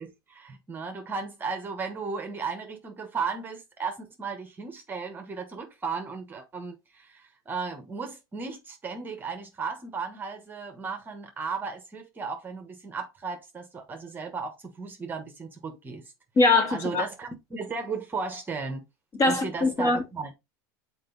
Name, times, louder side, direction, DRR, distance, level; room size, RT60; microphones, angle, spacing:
voice 1, 0.0-16.1 16.7-18.9 19.2-20.3, right 5 dB, 15° right, 1.1 m, -35 dB
voice 2, 16.4-17.0 19.2-20.0, left 3 dB, 30° left, 2.0 m, -22 dB
6.6 x 4.5 x 3.9 m
supercardioid pair, 135°, 11 cm